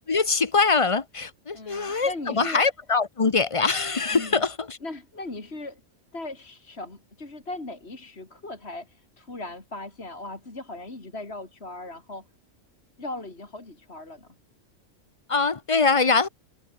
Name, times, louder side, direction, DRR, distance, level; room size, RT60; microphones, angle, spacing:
voice 1, 0.1-4.8 15.3-16.3, left 4 dB, 30° left, 0.9 m, -23 dB
voice 2, 1.5-2.6 4.1-4.4 4.8-5.8 6.1-12.3 13.0-14.3, left 2 dB, 50° left, 3.9 m, -38 dB
omnidirectional pair, 1.4 m